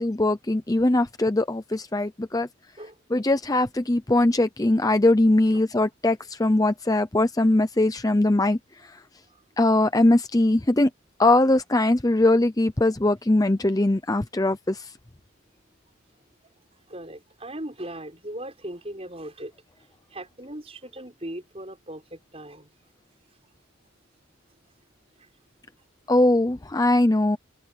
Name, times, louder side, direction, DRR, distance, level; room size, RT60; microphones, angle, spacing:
voice 1, 0.0-2.5 3.1-9.0 9.6-10.9 11.2-14.9 26.1-27.4, left 2 dB, 15° left, 0.6 m, -21 dB
voice 2, 16.7-19.5 20.1-22.7 25.2-25.3, right 1 dB, 30° right, 6.7 m, -38 dB
head